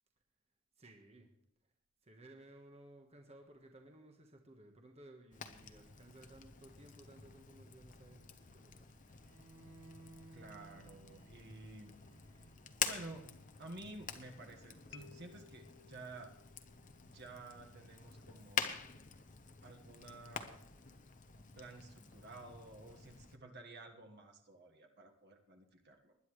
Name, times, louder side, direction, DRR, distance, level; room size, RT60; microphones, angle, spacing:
voice 1, 0.8-1.3 1.6-1.7 2.0-9.2, right 1 dB, 30° right, 2 dB, 1.3 m, -58 dB
Fire, 5.3-23.4, left 7 dB, 35° left, 0.9 m, -47 dB
Bowed string instrument, 9.2-15.3, right 3 dB, 85° right, 1.9 m, -61 dB
voice 2, 10.3-12.1 12.9-13.3 13.6-16.4 17.1-18.8 19.6-20.7 21.3-26.2, right 2 dB, 50° right, 3 dB, 1.6 m, -52 dB
sound 1, 13.0-14.4 14.9-17.6, left 7 dB, 60° left, 0.9 m, -63 dB
20.0 x 10.5 x 3.2 m, 0.74 s
head